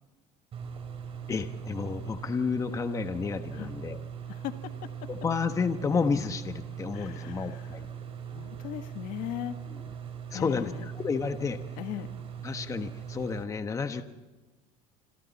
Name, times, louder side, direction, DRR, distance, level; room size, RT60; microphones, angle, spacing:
sound 1, 0.5-13.4, right 8 dB, 40° right, 3.5 m, -40 dB
voice 1, 1.3-4.0 5.1-7.9 10.3-11.6 12.4-14.0, left 5 dB, 20° left, 8 dB, 1.2 m, -31 dB
voice 2, 4.3-4.7 5.0-5.1 6.9-7.8 8.3-9.6 10.3-10.8 11.8-12.1, left 13 dB, 65° left, 8 dB, 1.6 m, -38 dB
27.5 x 26.0 x 4.2 m, 1.2 s
cardioid pair, 135°, 15 cm